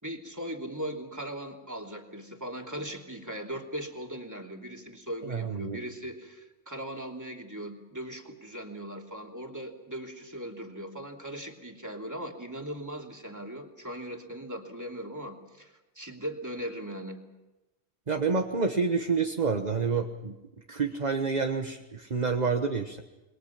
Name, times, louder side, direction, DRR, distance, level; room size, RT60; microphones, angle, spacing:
voice 1, 0.0-17.2, right 1 dB, 15° right, 1 dB, 3.0 m, -39 dB
voice 2, 5.2-5.8 18.1-20.4 20.7-23.0, right 4 dB, 40° right, 4 dB, 1.4 m, -28 dB
29.0 x 22.0 x 5.9 m, 1.0 s
omnidirectional pair, 1.1 m